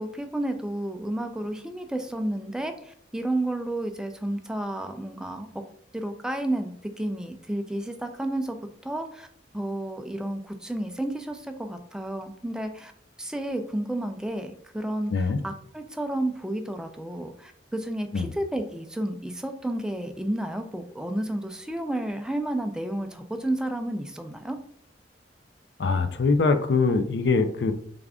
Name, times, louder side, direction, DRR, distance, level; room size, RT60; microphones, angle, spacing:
voice 1, 0.0-5.5 5.9-8.6 8.8-9.3 9.5-12.9 13.2-24.6, right 1 dB, 5° right, 6 dB, 0.3 m, -31 dB
voice 2, 15.1-15.4 18.1-18.3 25.8-27.7, left 4 dB, 65° left, 8 dB, 0.4 m, -23 dB
3.4 x 2.5 x 3.5 m, 0.64 s
head